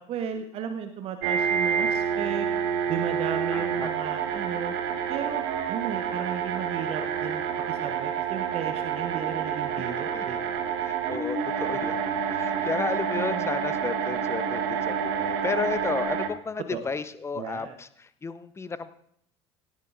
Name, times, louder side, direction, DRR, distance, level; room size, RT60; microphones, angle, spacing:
voice 1, 0.0-2.5 2.9-4.7 5.1-7.4 7.7-10.6 13.2-13.5 16.7-16.9 17.4-17.8, right 7 dB, 40° right, 7 dB, 1.1 m, -35 dB
sound 1, 1.2-16.3, right 7 dB, 60° right, 1.3 m, -28 dB
voice 2, 3.5-3.9 10.1-10.2 10.8-12.0 12.3-18.9, left 4 dB, 20° left, 13 dB, 0.9 m, -33 dB
18.0 x 14.5 x 2.6 m, 0.68 s
figure-of-eight pair, 65°, 15 cm